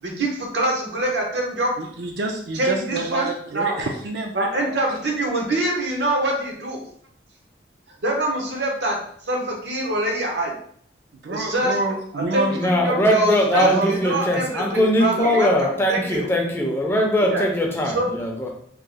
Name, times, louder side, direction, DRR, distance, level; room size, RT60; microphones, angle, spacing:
voice 1, 0.0-1.8 2.5-3.7 4.3-6.8 8.0-9.0 9.3-10.6 11.3-11.7 12.1-16.3 17.3-17.4 17.9-18.1, right 1 dB, 80° right, 0 dB, 0.8 m, -24 dB
voice 2, 1.8-4.9 11.1-12.6 13.6-14.0 15.2-15.4, right 2 dB, 65° right, 1 dB, 0.4 m, -28 dB
voice 3, 12.5-18.5, equal, 15° left, 1 dB, 0.5 m, -21 dB
3.0 x 2.1 x 3.6 m, 0.62 s
head